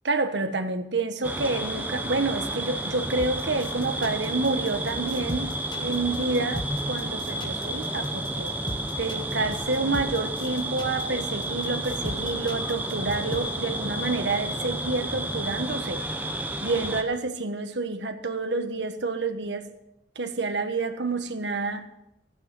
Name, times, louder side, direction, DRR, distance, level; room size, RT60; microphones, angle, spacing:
voice 1, 0.0-8.5 9.0-16.1 16.6-19.7 20.1-21.9, right 3 dB, 75° right, 7 dB, 1.3 m, -28 dB
sound 1, 1.2-17.0, right 1 dB, 10° right, 1.0 m, -31 dB
sound 2, 3.2-13.4, left 1 dB, 25° left, 1.5 m, -37 dB
15.0 x 9.7 x 6.1 m, 0.85 s
head